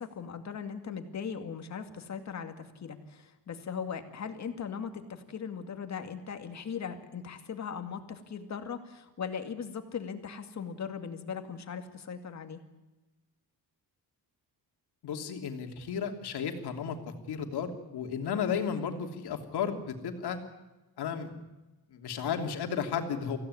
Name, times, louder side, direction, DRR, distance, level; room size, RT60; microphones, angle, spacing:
voice 1, 0.0-12.6, left 6 dB, 45° left, 7 dB, 2.3 m, -39 dB
voice 2, 15.0-17.0 17.3-20.4 21.0-21.3 21.9-23.4, left 7 dB, 75° left, 4 dB, 3.0 m, -33 dB
24.5 x 16.5 x 9.8 m, 1.1 s
cardioid pair, 145°, 39 cm